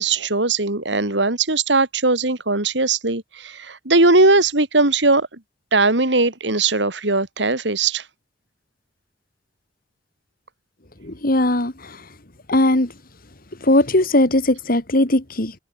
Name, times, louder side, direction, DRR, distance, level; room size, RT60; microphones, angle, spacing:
voice 1, 0.0-5.3 5.7-8.0, right 3 dB, 75° right, 3.3 m, -19 dB
voice 2, 11.0-12.0 12.5-12.9 13.6-15.5, left 1 dB, 55° left, 2.8 m, -19 dB
head